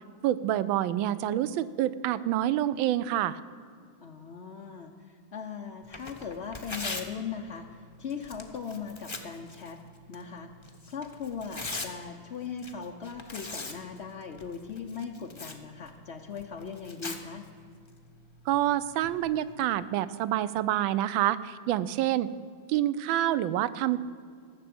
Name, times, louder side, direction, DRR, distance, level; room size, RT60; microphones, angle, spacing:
voice 1, 0.2-3.4 18.5-22.3 22.7-24.0, right 12 dB, 80° right, 16 dB, 1.3 m, -27 dB
voice 2, 4.0-9.8 10.1-10.5 10.9-17.4, left 6 dB, 80° left, 3 dB, 0.6 m, -39 dB
Tearing, 5.8-19.7, left 3 dB, 35° left, 0.4 m, -43 dB
14.5 x 6.9 x 8.4 m, 2.2 s
omnidirectional pair, 2.2 m